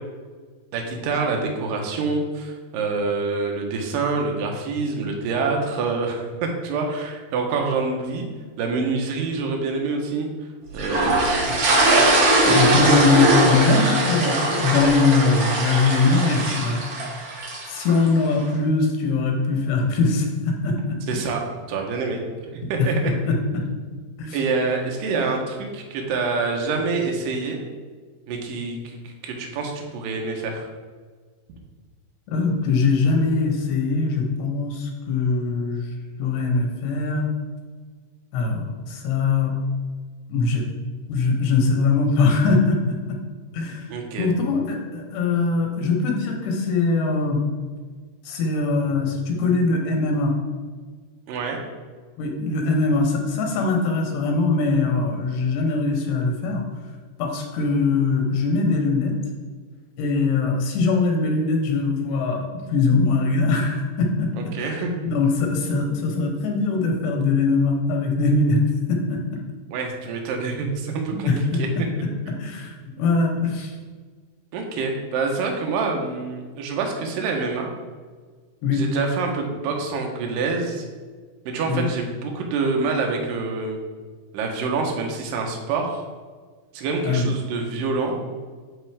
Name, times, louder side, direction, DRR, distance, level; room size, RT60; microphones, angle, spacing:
voice 1, 0.7-8.3 8.6-10.3 10.7-11.7 12.6-12.9 21.1-21.4 21.7-22.2 22.5-23.0 24.3-27.6 28.3-30.7 43.9-44.3 51.3-51.6 64.4-64.9 69.7-71.3 74.5-77.7 78.7-80.8 81.5-83.8 84.3-86.0 86.7-88.2, right 4 dB, 75° right, 2 dB, 2.2 m, -26 dB
sound 1, 10.8-18.1, right 2 dB, 90° right, 1.2 m, -20 dB
voice 2, 12.5-16.8 17.7-21.0 22.8-22.9 23.3-23.6 24.2-24.4 32.3-35.9 36.2-37.3 38.3-39.5 40.3-40.7 41.1-43.2 43.5-43.9 44.2-47.4 48.3-50.4 52.2-56.6 57.2-59.2 60.0-68.6 68.9-69.2 71.1-73.7 78.6-78.8 81.7-81.9 87.0-87.3, left 3 dB, 85° left, 2 dB, 3.2 m, -22 dB
10.5 x 3.7 x 3.5 m, 1.5 s
omnidirectional pair, 4.7 m